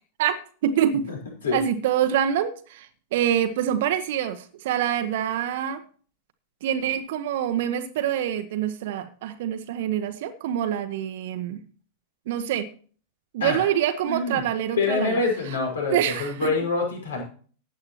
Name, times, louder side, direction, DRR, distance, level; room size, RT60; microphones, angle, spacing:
voice 1, 0.6-1.1 1.5-5.8 6.6-11.6 12.3-12.7 13.3-15.2 15.9-16.5, right 10 dB, 55° right, 8 dB, 1.0 m, -25 dB
voice 2, 14.1-14.4 14.8-17.2, left 4 dB, 65° left, 1 dB, 5.7 m, -26 dB
15.5 x 10.0 x 3.0 m, 0.42 s
figure-of-eight pair, 90°, 0 cm